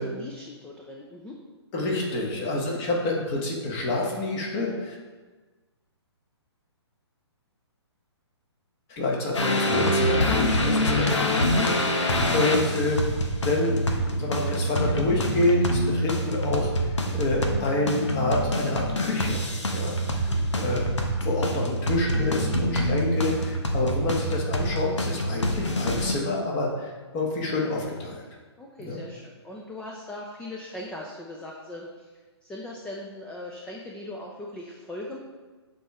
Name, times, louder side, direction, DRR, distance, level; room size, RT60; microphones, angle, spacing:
voice 1, 0.0-1.4 2.2-2.5 10.7-11.1 20.3-20.4 28.6-32.1 32.4-35.2, left 1 dB, 5° left, -1 dB, 0.5 m, -40 dB
voice 2, 1.7-5.0 8.9-20.8 21.2-28.2 28.8-29.0, left 2 dB, 30° left, -2 dB, 1.6 m, -28 dB
sound 1, 9.3-26.1, equal, 85° left, 1.1 m, -25 dB
7.6 x 4.4 x 4.8 m, 1.3 s
hypercardioid pair, 140°, 15 cm